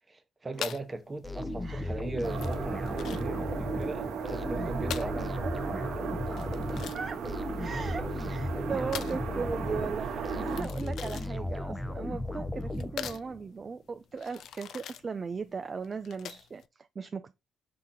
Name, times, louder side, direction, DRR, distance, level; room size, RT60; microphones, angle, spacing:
voice 1, 0.1-5.3 6.0-6.1 6.7-6.9 8.7-9.0 10.1-10.5, right 2 dB, 20° right, 0.8 m, -39 dB
sound 1, 0.5-16.7, left 9 dB, 70° left, 0.3 m, -44 dB
sound 2, 1.2-13.4, left 1 dB, 5° left, 0.6 m, -36 dB
voice 2, 1.6-2.0 4.5-4.7 5.0-5.5 6.9-7.2 7.6-17.3, right 5 dB, 35° right, 0.3 m, -38 dB
sound 3, 2.2-10.6, right 6 dB, 75° right, 0.7 m, -36 dB
4.8 x 2.7 x 3.7 m
cardioid pair, 90°, 0 cm